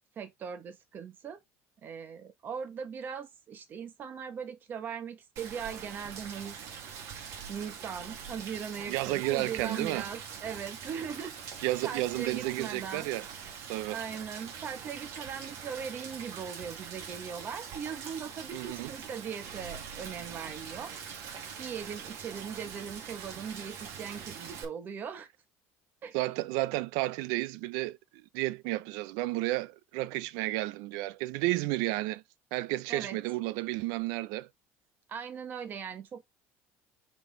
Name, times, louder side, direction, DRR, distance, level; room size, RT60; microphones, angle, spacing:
voice 1, 0.2-1.4 1.8-6.6 7.5-13.1 13.9-20.9 21.6-25.3 26.0-26.2 32.9-33.2 35.1-36.3, right 7 dB, 35° right, 1.4 m, -39 dB
Rain, 5.4-24.6, right 7 dB, 55° right, 2.2 m, -43 dB
voice 2, 8.9-10.1 11.6-13.3 13.7-14.0 18.5-18.9 26.1-32.2 32.5-34.5, right 18 dB, 80° right, 0.5 m, -32 dB
5.2 x 4.6 x 3.9 m
cardioid pair, 150°, 6 cm